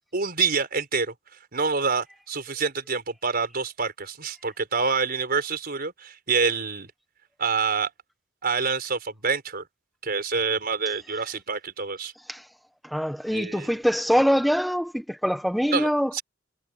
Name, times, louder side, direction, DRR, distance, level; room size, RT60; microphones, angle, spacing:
voice 1, 0.1-1.1 1.5-6.9 7.4-7.9 8.4-9.6 10.0-12.1 13.3-13.8 15.7-16.2, right 5 dB, 50° right, 5.0 m, -27 dB
voice 2, 12.8-16.2, equal, ahead, 1.4 m, -24 dB
head